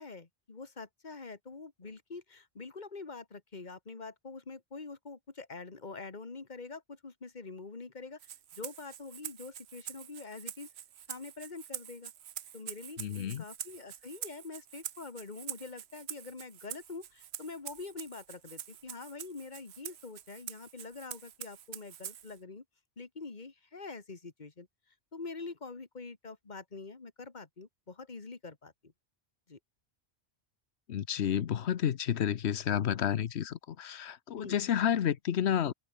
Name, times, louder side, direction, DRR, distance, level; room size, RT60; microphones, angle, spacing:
voice 1, 0.0-8.2 8.5-10.7 11.1-12.1 12.5-22.6 23.0-24.7 25.1-28.9 29.5-29.6 34.4-34.6, left 4 dB, 45° left, 2.0 m, -45 dB
Rattle (instrument), 8.2-22.4, right 10 dB, 75° right, 1.0 m, -45 dB
voice 2, 13.0-13.4 30.9-35.7, left 9 dB, 90° left, 1.1 m, -30 dB
omnidirectional pair, 1.1 m